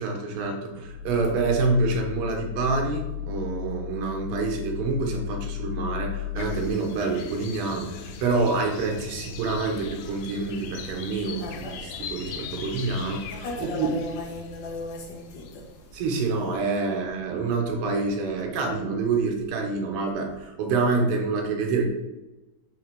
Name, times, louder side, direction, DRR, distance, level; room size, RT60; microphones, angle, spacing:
voice 1, 0.0-14.0 15.9-21.9, right 3 dB, 60° right, 1.5 m, -27 dB
sound 1, 0.7-6.7, left 14 dB, 80° right, 1.8 m, -35 dB
sound 2, 6.4-15.8, left 5 dB, 85° left, 2.4 m, -39 dB
voice 2, 11.4-11.8 13.3-15.9, left 2 dB, 55° left, 1.3 m, -36 dB
7.7 x 3.5 x 5.2 m
omnidirectional pair, 4.0 m